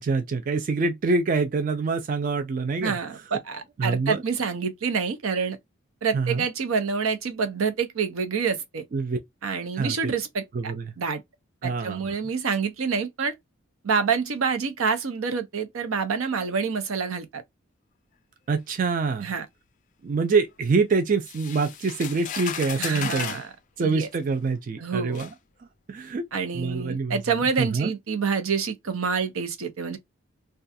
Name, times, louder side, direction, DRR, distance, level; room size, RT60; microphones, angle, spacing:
voice 1, 0.0-3.0 3.8-4.2 6.1-6.4 8.9-9.2 9.8-10.1 10.5-10.9 11.6-12.1 18.5-19.3 20.0-23.4 23.8-25.3 25.9-26.3 26.5-27.2 27.6-27.9, right 4 dB, 40° right, 0.3 m, -25 dB
voice 2, 2.8-5.6 6.0-8.8 9.4-11.2 11.6-13.3 13.8-17.4 19.2-19.5 22.8-23.5 23.8-24.1 24.8-25.2 26.3-30.0, right 5 dB, 80° right, 0.6 m, -27 dB
sound 1, 21.3-23.5 24.4-24.5 25.2-25.3, left 9 dB, 40° left, 0.3 m, -34 dB
2.4 x 2.2 x 2.6 m
head